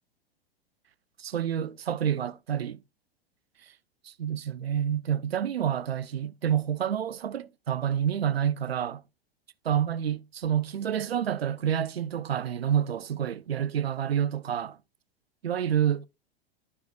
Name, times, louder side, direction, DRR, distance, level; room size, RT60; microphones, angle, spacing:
voice 1, 1.2-2.8 4.0-9.0 9.6-14.8 15.4-16.1, right 9 dB, 80° right, 0.5 m, -28 dB
11.0 x 6.9 x 2.3 m
figure-of-eight pair, 95°, 30 cm